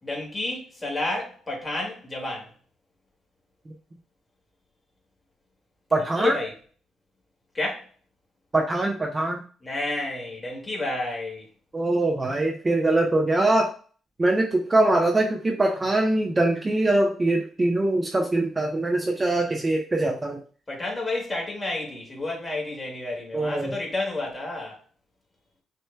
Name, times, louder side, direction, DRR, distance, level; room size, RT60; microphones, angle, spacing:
voice 1, 0.0-2.5 6.2-6.5 7.5-7.9 9.6-11.5 19.4-19.5 20.7-24.8, left 2 dB, 20° left, 2.0 m, -30 dB
voice 2, 5.9-6.3 8.5-9.4 11.7-13.7 14.2-20.4 23.3-23.8, right 2 dB, 25° right, 0.7 m, -23 dB
6.2 x 3.0 x 2.2 m
cardioid pair, 90°, 0 cm